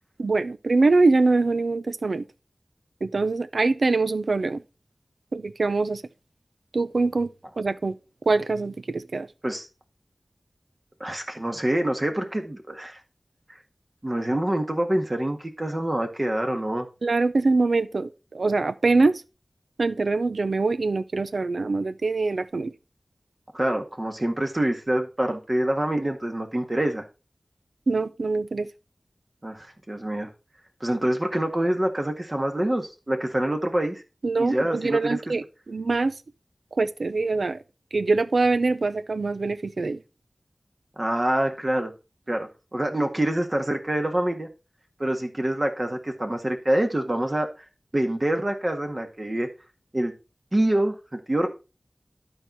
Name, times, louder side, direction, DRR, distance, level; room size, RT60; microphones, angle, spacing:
voice 1, 0.2-2.2 3.0-4.6 5.3-6.0 6.7-7.3 7.6-8.0 8.3-9.3 17.0-19.2 19.8-22.7 27.9-28.7 34.2-36.2 36.7-37.6 37.9-40.0, right 3 dB, 85° right, 0.5 m, -23 dB
voice 2, 11.0-13.0 14.0-16.9 23.5-27.0 29.4-30.3 30.8-34.0 34.4-35.2 41.0-41.9 42.3-44.5 45.0-47.5 47.9-49.5 49.9-50.1 50.5-51.5, right 1 dB, 35° right, 1.7 m, -26 dB
12.0 x 4.6 x 4.0 m
wide cardioid pair, 55°, 0 cm